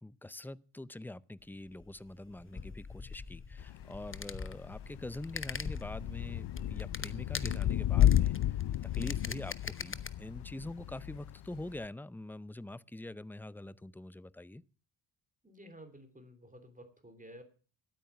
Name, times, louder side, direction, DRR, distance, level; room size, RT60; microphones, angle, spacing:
voice 1, 0.0-8.6 8.9-14.6, left 1 dB, 5° left, 0.5 m, -44 dB
sound 1, 1.5-10.1, left 5 dB, 25° left, 1.0 m, -42 dB
Thunder / Rain, 3.6-11.9, left 12 dB, 55° left, 0.6 m, -32 dB
voice 2, 15.4-17.4, equal, 15° right, 3.0 m, -53 dB
12.0 x 9.1 x 7.0 m
cardioid pair, 65°, 50 cm